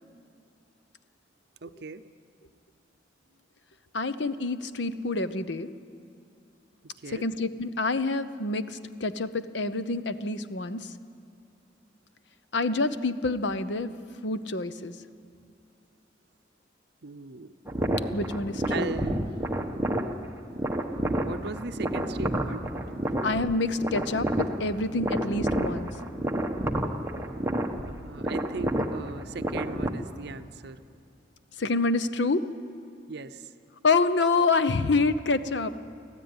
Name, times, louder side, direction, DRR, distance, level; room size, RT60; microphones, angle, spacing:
voice 1, 1.6-2.0 7.0-7.3 17.0-17.5 18.7-19.3 21.0-22.7 27.9-30.8 33.1-33.5, right 3 dB, 60° right, 10 dB, 0.7 m, -38 dB
voice 2, 3.9-5.7 7.1-10.9 12.5-13.9 14.2-14.9 18.1-18.9 23.2-25.9 31.6-32.5 33.8-35.8, left 3 dB, 70° left, 13 dB, 0.9 m, -27 dB
sound 1, 17.7-29.9, right 1 dB, 15° right, 1.2 m, -30 dB
24.5 x 15.0 x 9.7 m, 2.5 s
head